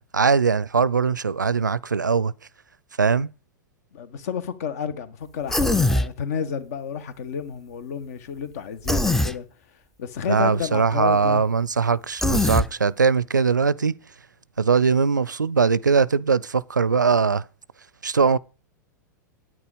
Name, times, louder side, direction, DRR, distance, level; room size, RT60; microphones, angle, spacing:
voice 1, 0.0-2.3 3.0-3.3 10.3-13.9 14.6-17.4 18.0-18.4, right 5 dB, 85° right, 0.4 m, -21 dB
voice 2, 3.9-9.5 10.0-11.4, left 7 dB, 55° left, 1.4 m, -31 dB
Human voice, 5.5-6.1 8.9-9.3 12.2-12.7, left 2 dB, 5° left, 0.5 m, -21 dB
9.4 x 9.2 x 4.9 m
figure-of-eight pair, 95°, 10 cm